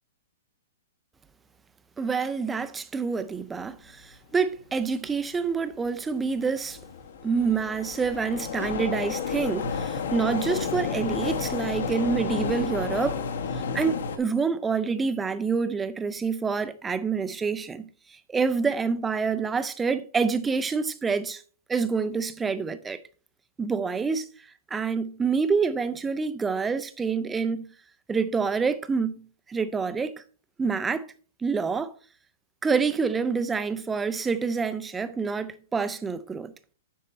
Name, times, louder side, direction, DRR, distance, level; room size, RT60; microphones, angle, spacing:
voice 1, 2.0-6.8 7.2-13.2 13.5-21.4 21.7-23.0 23.6-24.3 24.7-27.7 28.1-30.2 30.6-31.1 31.4-31.9 32.6-36.5, right 5 dB, 5° right, 0.3 m, -27 dB
sound 1, 5.5-5.6 6.2-14.2, left 6 dB, 55° left, 1.0 m, -31 dB
8.8 x 5.5 x 4.2 m
hypercardioid pair, 180°, 0 cm